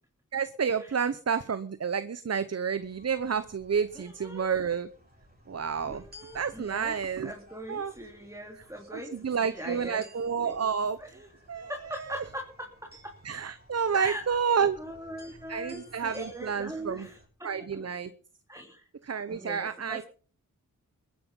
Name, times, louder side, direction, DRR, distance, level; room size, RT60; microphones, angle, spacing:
voice 1, 0.3-4.9 5.5-6.0 6.3-7.3 7.7-7.9 8.9-11.0 11.5-11.7 12.1-12.2 13.2-14.8 15.5-17.1 17.4-18.1 19.1-20.0, right 6 dB, 50° right, 13 dB, 0.9 m, -30 dB
sound 1, 2.8-17.3, equal, 30° right, 6.6 m, -56 dB
voice 2, 3.9-4.5 5.9-10.1 10.3-10.5 11.0-13.2 13.9-14.3 14.8-17.9 18.5-18.9 19.3-20.0, right 1 dB, 10° right, 2 dB, 3.1 m, -41 dB
22.0 x 9.9 x 5.4 m, 0.43 s
wide cardioid pair, 80°, 33 cm